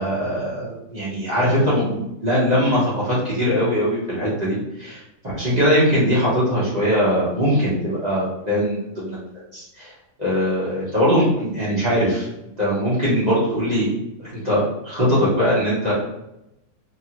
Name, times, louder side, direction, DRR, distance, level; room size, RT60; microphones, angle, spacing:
voice 1, 0.0-9.2 9.5-9.9 10.2-12.3 12.6-13.9 14.2-15.9, equal, 35° right, -9 dB, 0.8 m, -21 dB
2.8 x 2.3 x 2.8 m, 0.87 s
omnidirectional pair, 1.7 m